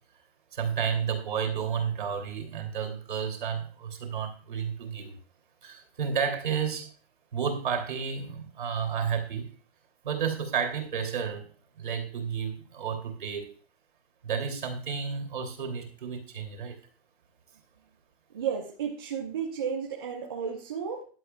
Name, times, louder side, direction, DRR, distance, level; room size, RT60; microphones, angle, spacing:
voice 1, 0.5-5.1 5.6-6.9 7.3-9.5 10.0-11.4 11.8-13.5 14.2-16.8, right 7 dB, 50° right, 4 dB, 2.8 m, -31 dB
voice 2, 18.3-21.0, right 7 dB, 20° right, -2 dB, 0.9 m, -33 dB
15.5 x 11.0 x 2.3 m, 0.41 s
hypercardioid pair, 180°, 33 cm